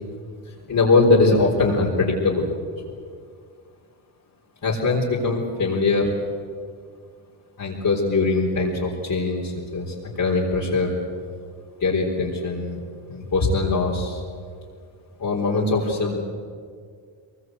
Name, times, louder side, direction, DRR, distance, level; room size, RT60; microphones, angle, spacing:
voice 1, 0.7-2.5 2.8-3.1 4.6-6.2 7.6-10.9 11.8-12.8 13.1-14.2 15.2-16.2, left 3 dB, 45° left, -4 dB, 4.1 m, -22 dB
22.5 x 21.5 x 8.0 m, 2.1 s
cardioid pair, 90°, 47 cm